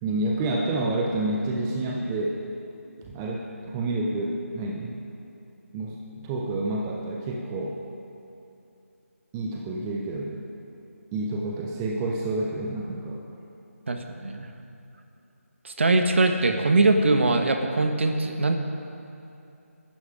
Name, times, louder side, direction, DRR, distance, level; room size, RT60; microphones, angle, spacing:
voice 1, 0.0-2.4 3.1-5.0 5.7-7.8 9.3-10.4 11.1-13.2, right 2 dB, 10° right, -1 dB, 0.7 m, -29 dB
voice 2, 13.9-14.5 15.6-18.6, right 2 dB, 55° right, 5 dB, 1.5 m, -22 dB
20.0 x 11.5 x 5.1 m, 2.7 s
figure-of-eight pair, 165°, 8 cm